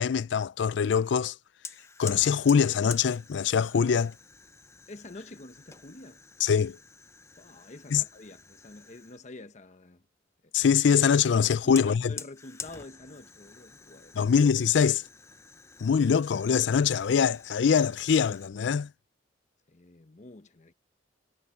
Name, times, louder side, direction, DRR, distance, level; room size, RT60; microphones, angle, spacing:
voice 1, 0.0-1.3 2.0-4.1 6.4-6.8 7.9-8.0 10.5-12.1 14.2-15.0 15.8-18.9, left 6 dB, 65° left, 0.4 m, -23 dB
Fire, 1.6-9.3 11.4-18.5, left 4 dB, 15° left, 0.7 m, -47 dB
voice 2, 4.9-6.2 7.4-10.0 11.4-14.2 19.7-20.7, left 2 dB, 40° left, 0.9 m, -47 dB
head